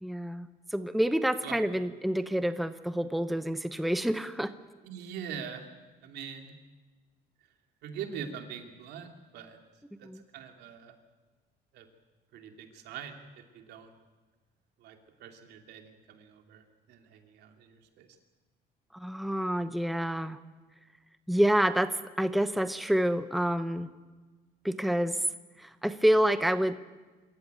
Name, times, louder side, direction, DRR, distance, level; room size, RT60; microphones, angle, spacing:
voice 1, 0.0-4.5 10.0-10.2 18.9-20.4 21.3-23.9 24.6-25.2 25.6-26.8, equal, ahead, 10 dB, 0.8 m, -28 dB
voice 2, 4.8-5.7 6.0-6.5 7.8-9.1 9.3-9.6 10.0-10.1 10.3-10.9 11.7-11.8 12.3-13.2 13.5-13.9 14.8-18.1, right 7 dB, 80° right, 4 dB, 2.8 m, -43 dB
25.5 x 14.5 x 9.2 m, 1.3 s
cardioid pair, 110°, 17 cm